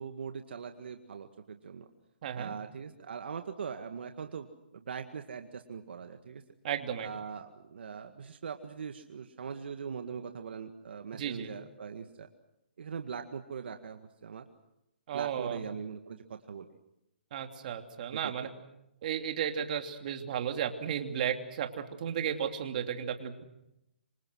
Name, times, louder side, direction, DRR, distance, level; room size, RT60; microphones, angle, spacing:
voice 1, 0.0-1.9 2.3-4.5 4.7-6.4 7.0-12.3 12.8-14.5 15.1-16.7 18.1-18.5, right 6 dB, 70° right, 6 dB, 1.9 m, -41 dB
voice 2, 2.2-2.6 6.6-7.1 11.1-11.5 15.1-15.6 17.3-18.5 19.0-23.4, right 8 dB, 45° right, 5 dB, 2.9 m, -34 dB
26.5 x 26.0 x 6.3 m, 0.85 s
hypercardioid pair, 150°, 6 cm